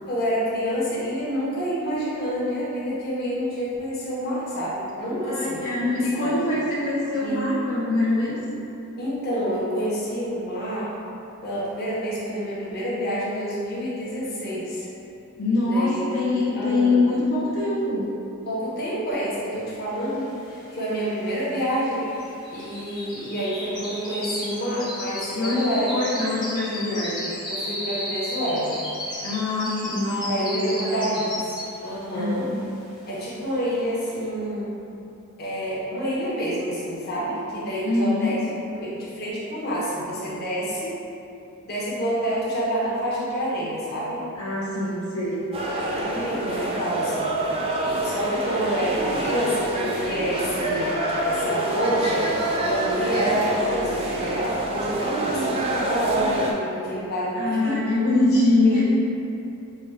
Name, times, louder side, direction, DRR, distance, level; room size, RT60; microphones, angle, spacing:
voice 1, 0.1-5.7 6.1-6.4 7.1-7.4 9.0-10.9 11.4-14.9 15.6-17.0 18.5-22.1 22.5-25.9 27.5-28.8 30.3-31.4 31.8-32.5 33.1-34.8 35.4-38.4 38.7-40.9 41.6-44.2 45.6-47.4 47.8-57.8 58.6-58.8, equal, 45° left, -8 dB, 1.0 m, -28 dB
voice 2, 5.2-8.4 15.4-18.1 25.3-27.3 29.2-31.2 32.1-32.6 37.8-38.3 44.4-45.5 57.4-58.8, left 2 dB, 75° left, -8 dB, 0.8 m, -24 dB
sound 1, 20.2-20.3 20.5-31.9 32.3-32.7 33.1-33.2, left 1 dB, 20° left, 0.9 m, -34 dB
sound 2, 45.5-56.5, right 1 dB, 25° right, 0.4 m, -26 dB
5.8 x 2.3 x 3.4 m, 2.8 s
head